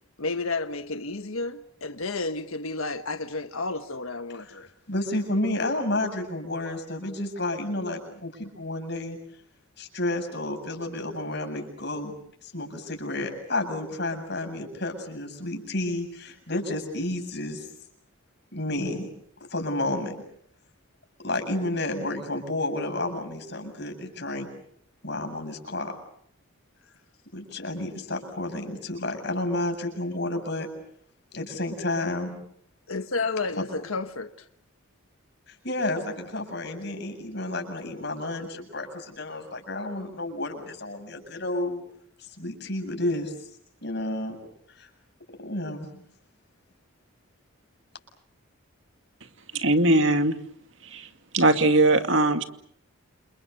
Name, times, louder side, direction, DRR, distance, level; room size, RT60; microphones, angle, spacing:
voice 1, 0.2-4.7 32.9-34.5, left 3 dB, 80° left, 1.4 m, -31 dB
voice 2, 4.9-9.2 9.8-12.1 12.4-17.7 18.5-19.1 19.5-20.2 21.2-24.5 25.0-25.9 27.3-30.7 31.3-32.4 35.5-41.8 42.3-43.3 43.8-44.3 44.7-44.9 45.4-46.0, left 1 dB, 50° left, 7.8 m, -31 dB
voice 3, 49.5-50.4 50.8-51.1 51.3-52.4, right 2 dB, 60° right, 2.4 m, -20 dB
29.5 x 29.0 x 6.7 m
head